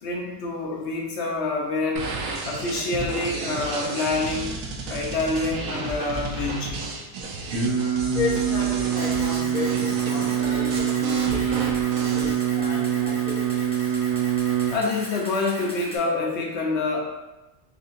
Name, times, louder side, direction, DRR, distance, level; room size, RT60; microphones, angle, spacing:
voice 1, 0.0-2.1 2.4-4.5 4.9-6.9 14.7-17.0, left 3 dB, 60° left, -1 dB, 1.0 m, -27 dB
sound 1, 2.0-12.3, right 3 dB, 85° right, 1.0 m, -33 dB
Singing, 7.5-14.7, right 9 dB, 65° right, 1.2 m, -24 dB
voice 2, 8.1-14.0, left 3 dB, 90° left, -5 dB, 1.5 m, -33 dB
Camera, 9.0-16.0, equal, 5° left, 0.7 m, -39 dB
4.7 x 2.7 x 2.5 m, 0.98 s
omnidirectional pair, 1.4 m